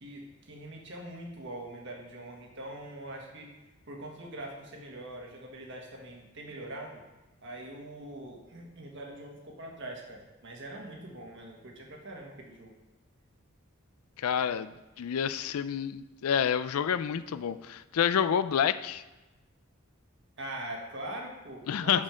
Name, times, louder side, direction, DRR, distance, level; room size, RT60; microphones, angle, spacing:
voice 1, 0.0-3.5 3.9-7.0 7.4-12.7 20.4-22.0, right 1 dB, 55° right, 0 dB, 1.5 m, -42 dB
voice 2, 14.2-19.0 21.7-22.0, left 8 dB, 90° left, 15 dB, 0.4 m, -28 dB
6.3 x 6.1 x 5.1 m, 1.1 s
head